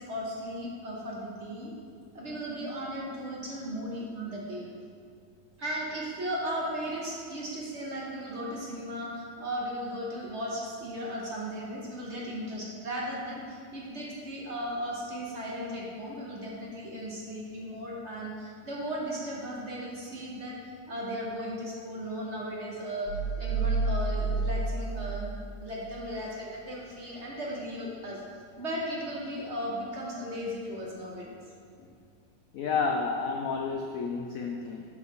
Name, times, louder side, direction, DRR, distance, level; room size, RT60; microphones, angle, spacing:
voice 1, 0.0-1.7 2.1-4.7 5.6-20.6 20.9-28.2 28.6-31.4, equal, 50° right, -3 dB, 0.9 m, -36 dB
sound 1, 23.1-25.9, right 3 dB, 70° right, 1.1 m, -30 dB
voice 2, 32.5-34.9, left 4 dB, 80° left, 2 dB, 0.7 m, -30 dB
10.0 x 4.0 x 3.6 m, 2.2 s
omnidirectional pair, 2.0 m